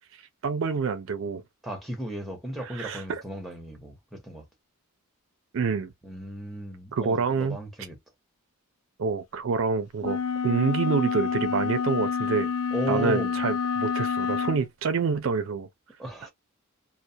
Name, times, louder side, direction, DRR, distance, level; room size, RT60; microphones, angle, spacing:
voice 1, 0.4-1.4 2.6-3.2 5.5-5.9 7.0-7.6 9.0-12.5 12.9-15.7, right 5 dB, 60° right, 0.4 m, -27 dB
voice 2, 1.6-4.4 6.0-8.0 12.7-13.4 16.0-16.3, right 1 dB, ahead, 0.8 m, -35 dB
sound 1, 10.0-14.6, left 6 dB, 90° left, 0.4 m, -28 dB
2.3 x 2.1 x 2.6 m
head